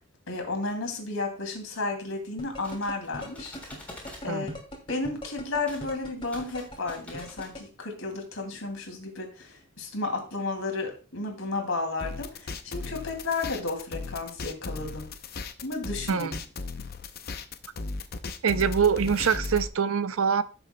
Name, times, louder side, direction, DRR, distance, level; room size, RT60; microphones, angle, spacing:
voice 1, 0.3-3.9 4.2-4.5 4.9-15.1 15.6-16.3, left 3 dB, 75° left, 3 dB, 2.6 m, -33 dB
sound 1, 2.4-7.6, equal, 25° left, 2.4 m, -39 dB
sound 2, 2.4-4.3 5.6-5.9 6.2-7.5, left 1 dB, 5° left, 3.5 m, -46 dB
sound 3, 12.0-19.7, left 3 dB, 45° left, 0.6 m, -36 dB
voice 2, 18.4-20.4, right 6 dB, 80° right, 14 dB, 0.5 m, -24 dB
15.5 x 6.8 x 2.2 m, 0.35 s
head